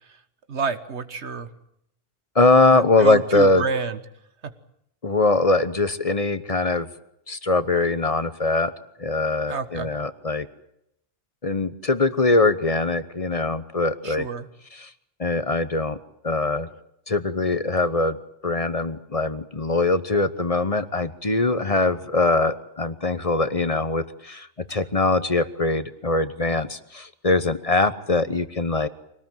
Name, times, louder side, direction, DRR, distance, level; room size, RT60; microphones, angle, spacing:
voice 1, 0.5-1.5 2.7-4.0 4.4-4.5 9.5-9.9 14.0-14.5 24.7-24.8, right 5 dB, 70° right, 11 dB, 1.8 m, -28 dB
voice 2, 2.3-3.6 5.0-6.9 7.3-8.7 9.0-10.5 11.4-14.3 14.7-14.9 15.2-16.0 16.2-16.7 17.1-18.2 18.4-28.9, left 2 dB, 30° left, 13 dB, 1.1 m, -22 dB
25.0 x 19.0 x 9.2 m, 0.78 s
omnidirectional pair, 1.2 m